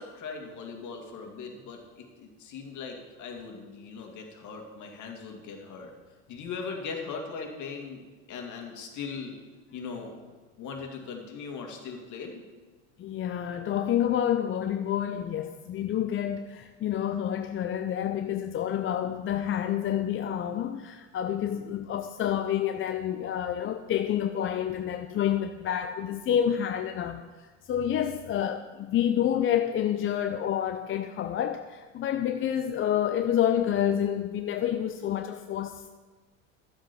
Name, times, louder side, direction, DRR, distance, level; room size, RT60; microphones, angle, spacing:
voice 1, 0.0-5.9 6.3-8.0 8.3-9.4 9.7-10.1 10.6-12.4, left 5 dB, 50° left, 2.3 m, -39 dB
voice 2, 13.0-35.9, left 10 dB, 35° left, 0.6 m, -28 dB
12.0 x 7.5 x 5.3 m
hypercardioid pair, 85°, 38 cm